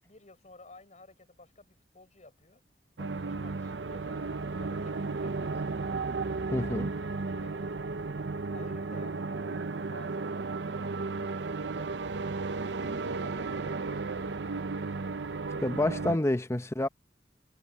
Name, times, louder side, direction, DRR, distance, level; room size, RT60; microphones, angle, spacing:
voice 1, 0.0-2.6 3.0-6.1 6.5-12.2 13.1-15.1, left 2 dB, 40° left, 6.4 m, -55 dB
sound 1, 3.0-16.2, right 3 dB, 85° right, 0.7 m, -34 dB
voice 2, 6.5-6.9 15.6-16.9, left 1 dB, 15° left, 0.8 m, -28 dB
head